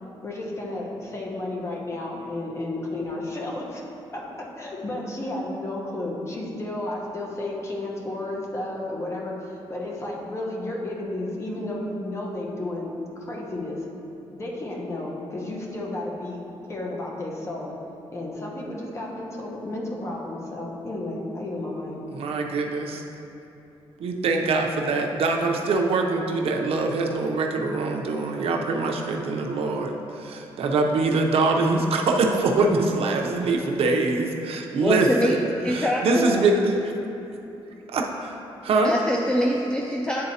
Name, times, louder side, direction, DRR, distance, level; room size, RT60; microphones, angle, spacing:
voice 1, 0.2-3.8 4.1-4.2 4.6-13.8 14.3-17.7 18.1-22.0, left 2 dB, 30° left, -2 dB, 0.9 m, -32 dB
voice 2, 22.1-23.0 24.0-35.4 35.7-36.9 37.9-38.4 38.6-38.9, right 3 dB, 75° right, 2 dB, 0.6 m, -23 dB
voice 3, 34.8-35.4 35.6-36.5 38.8-40.3, equal, 10° left, -1 dB, 0.3 m, -24 dB
9.6 x 3.9 x 2.7 m, 2.8 s
cardioid pair, 130°, 10 cm